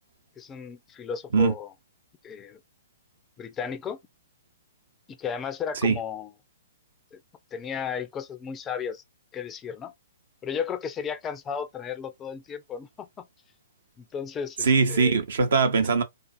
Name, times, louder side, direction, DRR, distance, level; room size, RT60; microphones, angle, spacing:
voice 1, 0.4-1.7 2.2-2.6 3.4-4.0 5.1-6.3 7.1-7.2 7.5-9.0 9.3-9.9 10.4-13.2 14.0-15.2, left 7 dB, 20° left, 0.3 m, -34 dB
voice 2, 14.6-16.0, right 5 dB, 70° right, 0.6 m, -21 dB
2.5 x 2.4 x 2.3 m
hypercardioid pair, 125°, 0 cm